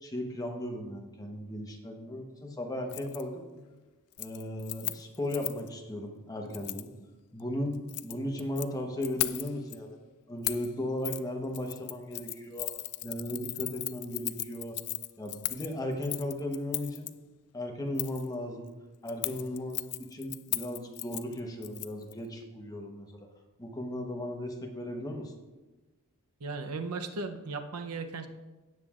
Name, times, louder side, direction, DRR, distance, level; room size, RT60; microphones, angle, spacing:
voice 1, 0.0-3.4 4.2-6.9 7.3-10.0 10.3-12.7 13.0-14.8 15.2-17.1 17.5-18.7 19.0-23.3 23.6-25.3, left 1 dB, 15° left, 2 dB, 1.1 m, -36 dB
Keys jangling, 2.9-3.2 3.6-3.8 4.1-5.7 6.5-6.9 7.7-8.7 9.0-9.8 10.4-10.7 11.0-11.2 11.5-17.1 18.0-18.3 19.1-22.1 22.4-22.5, left 18 dB, 70° left, 0.4 m, -37 dB
voice 2, 26.4-28.3, right 3 dB, 80° right, 7 dB, 0.8 m, -36 dB
17.0 x 7.6 x 2.5 m, 1.2 s
head